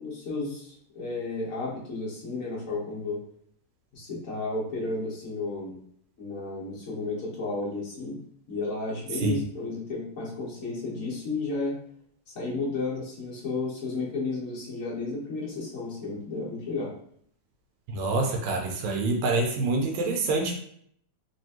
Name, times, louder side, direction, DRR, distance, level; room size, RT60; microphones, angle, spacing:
voice 1, 0.0-3.2 3.9-5.7 6.2-8.2 8.5-11.8 12.3-16.9, left 3 dB, 60° left, -6 dB, 0.8 m, -32 dB
voice 2, 17.9-20.6, right 3 dB, 80° right, 1 dB, 1.9 m, -26 dB
4.4 x 3.0 x 2.8 m, 0.64 s
omnidirectional pair, 3.3 m